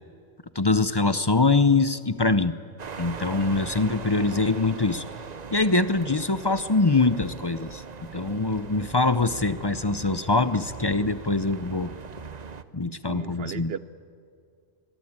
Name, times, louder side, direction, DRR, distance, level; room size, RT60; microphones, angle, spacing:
voice 1, 0.5-2.5 3.0-5.0 5.5-7.8 8.1-11.9 12.7-13.7, left 3 dB, 25° left, 12 dB, 0.6 m, -23 dB
sound 1, 2.8-12.6, right 5 dB, 40° right, 0.8 m, -40 dB
voice 2, 12.8-13.8, right 7 dB, 60° right, 15 dB, 1.0 m, -36 dB
23.5 x 22.5 x 8.8 m, 2.4 s
omnidirectional pair, 1.2 m